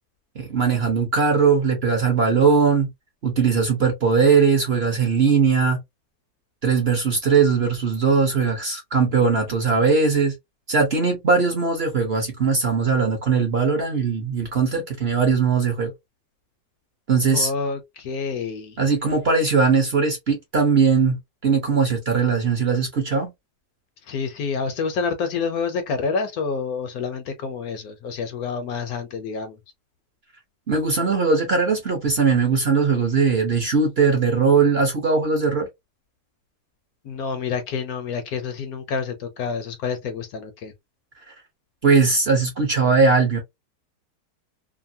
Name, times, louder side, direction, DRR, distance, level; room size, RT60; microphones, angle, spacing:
voice 1, 0.3-2.9 3.2-5.8 6.6-10.3 10.7-15.9 17.1-17.5 18.8-23.3 30.7-35.7 41.8-43.4, right 5 dB, 45° right, 0.9 m, -20 dB
voice 2, 17.3-18.8 24.1-29.6 37.0-40.7, left 5 dB, 70° left, 1.0 m, -28 dB
2.9 x 2.5 x 2.6 m
omnidirectional pair, 1.8 m